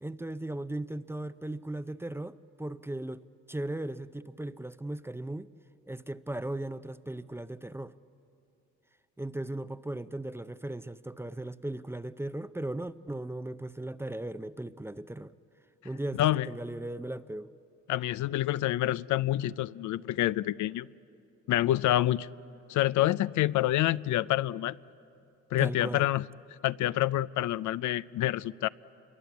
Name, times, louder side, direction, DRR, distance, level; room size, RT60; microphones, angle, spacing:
voice 1, 0.0-5.5 5.9-7.9 9.2-15.3 15.8-17.5 25.6-26.1, right 1 dB, 10° right, 0.5 m, -37 dB
voice 2, 17.9-20.9 21.5-22.3 22.7-24.8 25.5-26.2 26.6-28.7, left 14 dB, 75° left, 0.5 m, -27 dB
27.5 x 22.5 x 8.3 m
cardioid pair, 90°, 30 cm